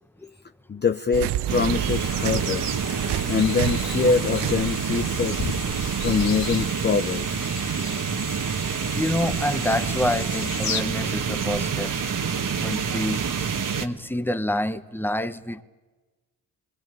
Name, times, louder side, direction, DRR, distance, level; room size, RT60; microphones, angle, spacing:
voice 1, 0.7-2.8 3.3-5.5 6.0-7.3, left 5 dB, 25° left, 9 dB, 0.7 m, -24 dB
sound 1, 1.1-6.7, right 14 dB, 75° right, 0.7 m, -30 dB
sound 2, 1.5-13.9, right 6 dB, 50° right, 1.6 m, -28 dB
sound 3, 1.8-10.8, left 6 dB, 60° left, 1.8 m, -37 dB
voice 2, 8.6-11.9 12.6-13.2 13.8-15.6, left 1 dB, 5° left, 11 dB, 1.1 m, -27 dB
20.5 x 20.0 x 9.0 m, 1.3 s
supercardioid pair, 65°, 40 cm